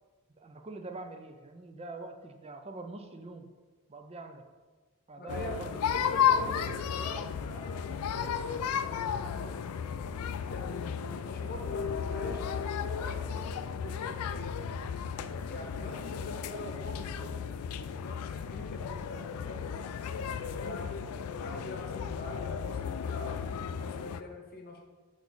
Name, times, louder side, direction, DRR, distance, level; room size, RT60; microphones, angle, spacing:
voice 1, 0.4-3.5 3.9-4.4 5.1-6.6, right 2 dB, 30° right, 6 dB, 0.5 m, -44 dB
voice 2, 5.2-5.7 5.9-9.6 10.5-14.7 15.5-20.9 21.4-24.8, left 1 dB, 45° left, 3 dB, 0.9 m, -44 dB
sound 1, 5.3-24.2, left 7 dB, 85° left, 0.4 m, -34 dB
6.5 x 4.7 x 4.1 m, 1.4 s
head